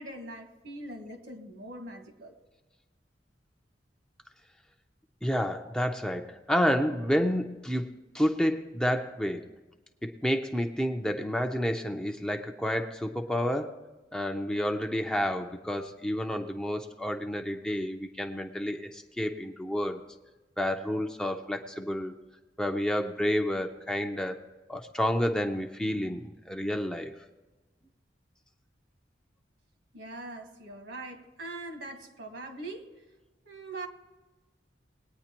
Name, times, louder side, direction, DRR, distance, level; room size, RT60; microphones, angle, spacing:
voice 1, 0.0-2.3 5.6-5.7 29.9-32.9 33.4-33.9, right 2 dB, 70° right, 1.5 m, -42 dB
voice 2, 5.2-7.9 8.1-9.4 10.0-13.8 14.1-20.0 20.6-22.1 22.6-24.4 24.7-27.1, equal, 5° left, 0.5 m, -30 dB
20.5 x 9.1 x 2.9 m
head